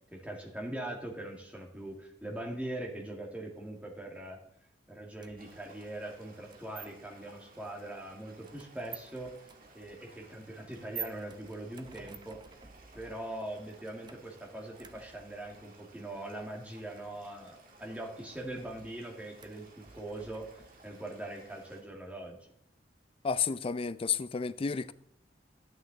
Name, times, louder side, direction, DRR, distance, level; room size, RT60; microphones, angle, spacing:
voice 1, 0.1-4.4 4.9-9.3 9.7-12.4 12.9-22.4, right 1 dB, 10° right, 2.1 m, -42 dB
sound 1, 5.2-21.0, right 6 dB, 25° right, 0.7 m, -51 dB
sound 2, 5.4-21.8, right 2 dB, 55° right, 2.0 m, -59 dB
voice 2, 23.2-24.9, left 6 dB, 30° left, 0.4 m, -31 dB
11.0 x 9.1 x 4.0 m
head